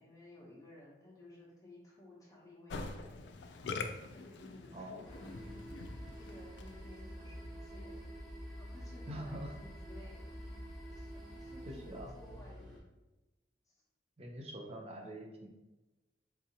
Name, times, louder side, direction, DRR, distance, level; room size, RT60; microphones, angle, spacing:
voice 1, 0.0-3.1 4.1-5.6 5.9-8.1 8.6-10.4 10.9-12.8 13.7-13.8 14.5-14.9, left 1 dB, 20° left, -6 dB, 0.8 m, -56 dB
Musical instrument, 2.7-7.0, left 4 dB, 75° left, 0.3 m, -44 dB
voice 2, 4.7-5.0 9.1-9.5 11.7-12.1 14.2-15.5, equal, 35° right, 0 dB, 0.6 m, -44 dB
sound 1, 5.0-12.8, equal, ahead, 1.1 m, -47 dB
3.6 x 2.7 x 2.8 m, 1.1 s
head